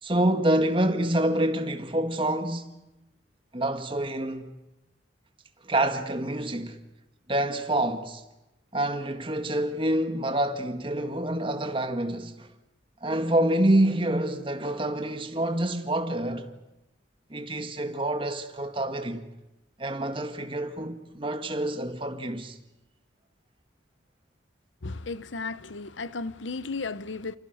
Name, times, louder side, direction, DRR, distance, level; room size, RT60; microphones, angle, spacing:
voice 1, 0.0-2.7 3.5-4.5 5.6-6.8 7.3-8.2 8.7-12.5 13.0-16.5 17.3-19.3 19.8-22.6, right 1 dB, 25° right, 1.8 m, -27 dB
voice 2, 24.8-27.4, left 3 dB, 80° left, 0.9 m, -34 dB
29.5 x 27.5 x 6.5 m
head